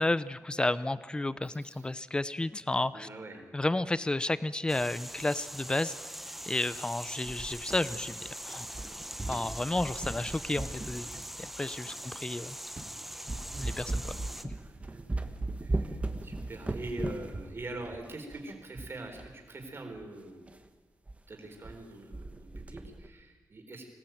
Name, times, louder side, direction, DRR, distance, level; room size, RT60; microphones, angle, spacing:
voice 1, 0.0-3.1 3.5-5.9 6.5-8.2 8.5-8.7 9.3-11.1 11.4-12.6 13.6-14.0, left 2 dB, 15° left, 16 dB, 0.7 m, -31 dB
voice 2, 1.4-1.9 2.9-3.4 11.8-12.1 13.9-14.2 14.6-15.2 15.6-20.5 21.3-23.9, right 2 dB, 35° right, 3 dB, 4.3 m, -44 dB
sound 1, 4.7-14.4, equal, 5° right, 1.0 m, -42 dB
sound 2, 7.2-8.4 8.7-11.7 12.3-12.4 12.7-12.9 13.3-19.3 19.6-19.7 20.0-20.1 20.5-20.6 21.1-21.2 21.4-21.8 22.1-23.1, right 2 dB, 20° right, 1.5 m, -38 dB
25.0 x 18.0 x 9.3 m, 1.4 s
wide cardioid pair, 180°, 7 cm